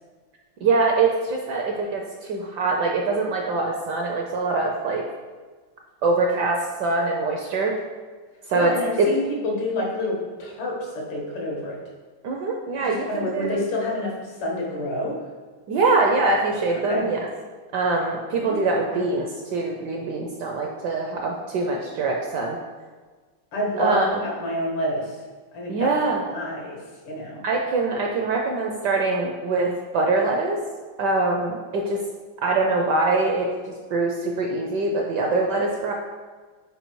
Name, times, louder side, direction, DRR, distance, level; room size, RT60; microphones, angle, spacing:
voice 1, 0.6-5.0 6.0-7.8 8.5-8.7 9.0-9.1 12.2-13.6 15.7-17.2 17.7-22.6 23.8-24.2 25.7-26.2 27.4-30.6 31.0-32.0 32.4-35.9, right 3 dB, 70° right, 1 dB, 1.0 m, -23 dB
voice 2, 8.5-11.8 12.8-15.2 16.9-17.0 18.4-19.0 23.5-25.2 25.5-26.0 26.3-26.8 27.0-27.4, left 1 dB, 85° left, -2 dB, 2.3 m, -28 dB
5.3 x 4.6 x 4.6 m, 1.4 s
omnidirectional pair, 2.4 m